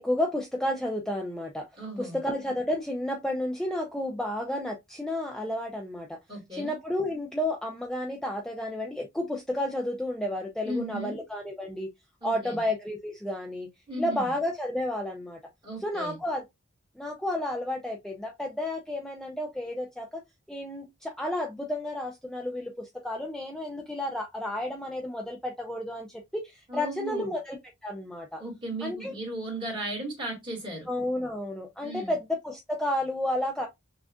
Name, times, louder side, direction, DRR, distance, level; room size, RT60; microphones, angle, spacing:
voice 1, 0.0-1.7 2.0-6.2 6.5-11.9 12.2-13.7 14.0-15.4 15.8-16.4 17.0-20.2 20.5-28.4 28.8-29.1 30.9-33.7, left 1 dB, 5° left, 0.4 m, -31 dB
voice 2, 1.8-2.2 6.3-6.8 10.6-11.2 12.2-12.6 13.9-14.3 15.6-16.2 26.7-27.3 28.4-30.9 31.8-32.2, right 1 dB, 25° right, 2.0 m, -36 dB
6.1 x 2.4 x 2.3 m
head